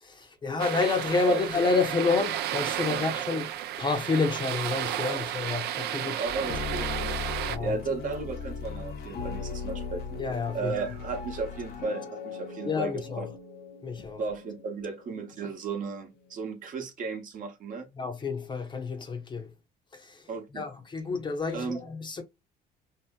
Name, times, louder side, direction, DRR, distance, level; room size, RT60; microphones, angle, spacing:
voice 1, 0.0-3.5 3.8-6.2 7.5-7.8 10.2-10.8 12.6-13.3 13.8-14.2 18.0-19.5 19.9-20.2 20.5-22.2, left 4 dB, 30° left, 0.7 m, -29 dB
sound 1, 0.6-7.6, right 12 dB, 75° right, 0.4 m, -32 dB
voice 2, 2.9-3.3 5.1-5.2 6.2-7.0 7.6-10.2 10.5-13.3 14.2-17.9 20.3-20.7 21.5-21.8, right 4 dB, 50° right, 0.9 m, -35 dB
sound 2, 6.2-16.7, left 5 dB, 65° left, 0.8 m, -39 dB
2.7 x 2.6 x 2.2 m
cardioid pair, 110°, 17 cm